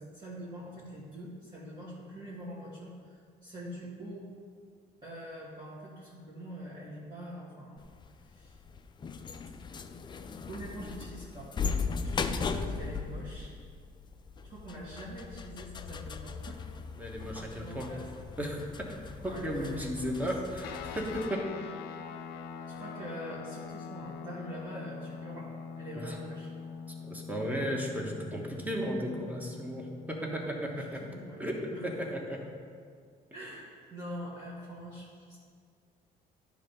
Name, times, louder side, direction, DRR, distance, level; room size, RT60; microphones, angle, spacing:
voice 1, 0.0-4.3 5.0-7.8 8.2-8.6 10.1-10.2 10.5-11.5 12.0-13.5 14.4-16.7 17.5-18.1 19.2-20.3 22.7-25.5 25.8-26.5 30.2-32.0 33.3-35.4, equal, 25° right, -8 dB, 1.6 m, -44 dB
sound 1, 7.8-21.3, left 5 dB, 25° left, 0.4 m, -38 dB
voice 2, 17.0-18.0 18.4-21.5 25.9-26.2 27.1-31.0 31.4-32.4, equal, 10° right, 0 dB, 1.2 m, -35 dB
sound 2, 20.6-32.4, left 6 dB, 85° left, 0.5 m, -44 dB
10.0 x 3.4 x 5.3 m, 2.1 s
cardioid pair, 110°, 17 cm